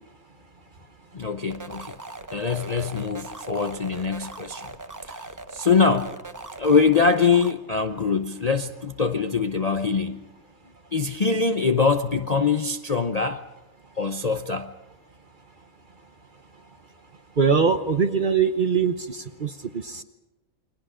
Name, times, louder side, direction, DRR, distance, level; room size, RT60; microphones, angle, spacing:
voice 1, 1.1-2.0 2.3-4.7 5.1-6.1 6.6-10.3 10.9-13.4 14.0-14.7, left 5 dB, 40° left, 0.6 m, -23 dB
sound 1, 1.5-7.5, right 2 dB, 15° right, 0.7 m, -39 dB
voice 2, 17.4-20.0, right 6 dB, 40° right, 0.9 m, -22 dB
29.0 x 22.5 x 5.0 m
omnidirectional pair, 1.6 m